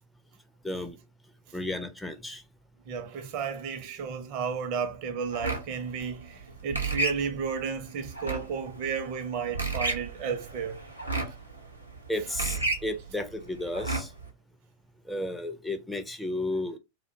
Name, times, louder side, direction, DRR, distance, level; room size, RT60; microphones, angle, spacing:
voice 1, 0.6-1.0 1.5-2.4 12.1-14.1 15.1-16.8, left 1 dB, 5° left, 0.3 m, -33 dB
voice 2, 2.9-10.8, right 6 dB, 45° right, 0.6 m, -33 dB
sound 1, 5.3-14.3, right 3 dB, 90° right, 0.7 m, -33 dB
2.4 x 2.1 x 2.6 m
figure-of-eight pair, 90°, 0 cm